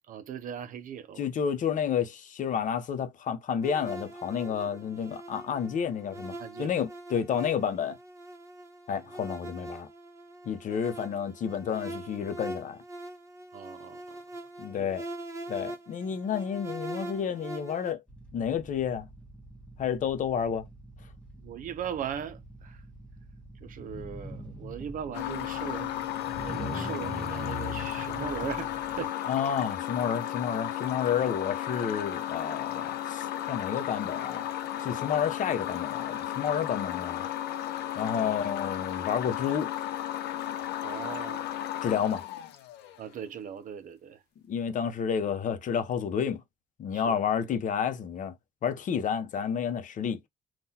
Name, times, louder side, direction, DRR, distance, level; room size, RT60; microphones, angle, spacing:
voice 1, 0.1-1.3 4.5-4.8 6.4-6.7 13.5-14.2 14.8-14.9 21.4-22.8 23.6-26.0 26.4-29.2 30.1-30.2 38.2-38.5 40.8-41.5 43.0-44.2 46.9-47.6, right 8 dB, 55° right, 0.6 m, -39 dB
voice 2, 1.2-8.0 8.9-9.9 10.5-12.8 14.6-15.0 15.5-18.0 18.3-19.1 19.8-20.6 29.3-34.5 34.8-37.3 38.0-39.7 41.8-42.2 44.5-46.4 46.8-48.3 48.6-50.2, left 8 dB, 50° left, 0.7 m, -30 dB
sound 1, 3.6-17.9, right 1 dB, 15° right, 1.1 m, -43 dB
sound 2, 18.1-29.0, equal, 5° left, 1.2 m, -43 dB
sound 3, 25.1-43.1, left 12 dB, 80° left, 0.8 m, -34 dB
3.7 x 2.3 x 2.8 m
cardioid pair, 110°, 17 cm